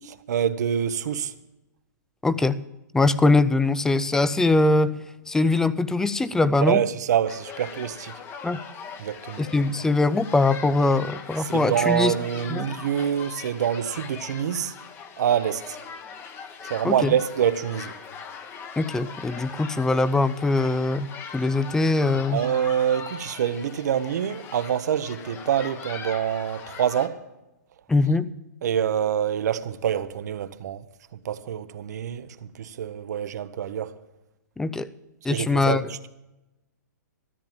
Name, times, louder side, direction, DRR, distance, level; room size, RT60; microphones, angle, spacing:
voice 1, 0.3-1.3 6.6-8.1 9.0-9.5 11.4-14.7 15.2-15.8 16.6-17.9 22.3-27.2 28.6-30.8 31.2-33.9 35.3-36.1, right 9 dB, 65° right, 0.9 m, -26 dB
voice 2, 2.2-2.7 2.9-6.8 8.4-8.6 9.4-12.1 12.5-12.7 16.8-17.1 18.8-22.5 27.9-28.3 34.6-34.9 35.2-35.8, left 2 dB, 5° left, 0.4 m, -22 dB
sound 1, 7.3-27.1, left 6 dB, 20° left, 1.1 m, -40 dB
13.5 x 9.0 x 7.3 m
hypercardioid pair, 140°, 10 cm